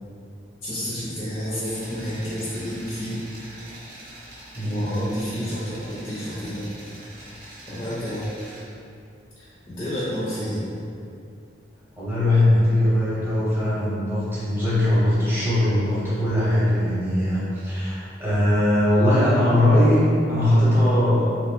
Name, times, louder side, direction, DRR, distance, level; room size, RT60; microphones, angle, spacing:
voice 1, 0.6-3.2 4.6-6.7 7.7-8.3 9.4-10.7, equal, 20° left, -11 dB, 0.4 m, -30 dB
sound 1, 1.6-8.6, right 1 dB, 55° right, 0.6 m, -43 dB
voice 2, 4.5-4.9 11.9-21.3, left 1 dB, 10° right, -10 dB, 0.7 m, -20 dB
2.6 x 2.1 x 3.0 m, 2.5 s
head